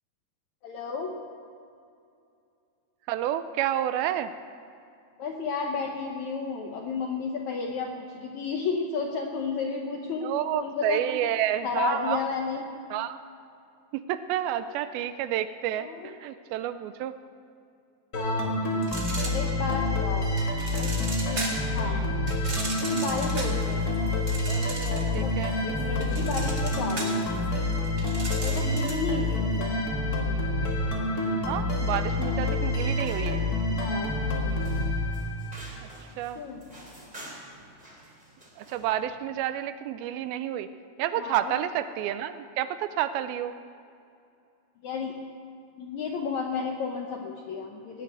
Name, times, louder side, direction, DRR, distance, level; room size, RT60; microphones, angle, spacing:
voice 1, 0.6-1.2 5.2-10.3 10.6-11.0 11.6-12.6 15.7-16.1 18.1-18.5 19.3-20.3 20.8-22.0 22.8-24.0 24.5-25.4 25.6-27.3 28.4-29.7 31.9-32.0 33.7-34.1 36.4-36.7 41.2-41.6 44.8-45.1 45.8-48.0, left 5 dB, 75° left, 1 dB, 1.7 m, -32 dB
voice 2, 3.1-4.3 10.2-12.2 12.9-13.2 13.9-17.2 21.8-22.1 25.1-25.5 28.4-28.8 31.5-33.4 36.2-36.4 38.6-40.7 41.0-43.5, right 11 dB, 80° right, 12 dB, 2.3 m, -30 dB
sound 1, 18.1-35.7, left 2 dB, 35° left, 1.5 m, -28 dB
sound 2, 18.8-19.9 20.4-21.7 22.3-25.2 25.5-29.1, right 2 dB, 35° right, 1.9 m, -36 dB
sound 3, 32.8-39.0, right 1 dB, 10° right, 3.3 m, -49 dB
19.0 x 7.9 x 8.9 m, 2.6 s
omnidirectional pair, 4.5 m